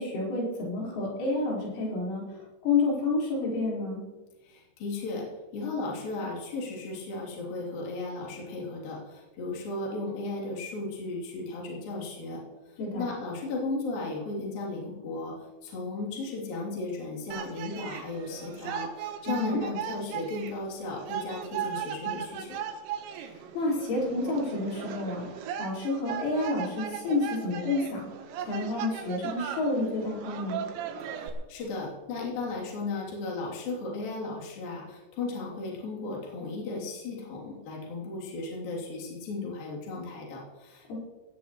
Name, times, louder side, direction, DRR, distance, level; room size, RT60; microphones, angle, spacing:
voice 1, 0.0-4.0 12.8-13.0 19.3-19.6 23.2-25.2 25.6-28.1 28.4-30.6, left 3 dB, 85° left, -5 dB, 7.3 m, -29 dB
voice 2, 4.4-22.6 31.0-41.0, left 3 dB, 50° left, -4 dB, 4.6 m, -35 dB
sound 1, 17.3-31.3, right 9 dB, 80° right, 3.5 m, -37 dB
17.5 x 16.5 x 3.1 m, 1.2 s
omnidirectional pair, 5.4 m